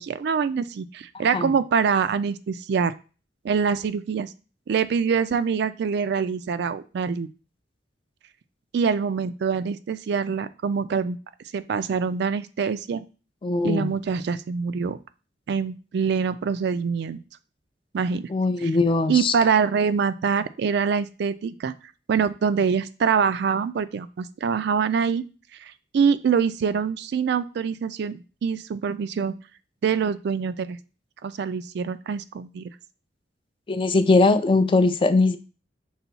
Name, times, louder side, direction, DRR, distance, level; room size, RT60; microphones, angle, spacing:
voice 1, 0.0-2.9 3.4-4.3 4.7-7.3 8.7-11.2 11.5-13.0 13.6-15.0 15.5-17.2 17.9-18.3 18.6-18.7 19.1-21.7 22.1-25.2 25.6-29.3 29.8-30.8 31.2-32.7, right 6 dB, 65° right, 0.3 m, -24 dB
voice 2, 13.4-13.9 18.3-19.3 33.7-35.4, left 3 dB, 30° left, 0.3 m, -20 dB
5.6 x 2.3 x 3.9 m
head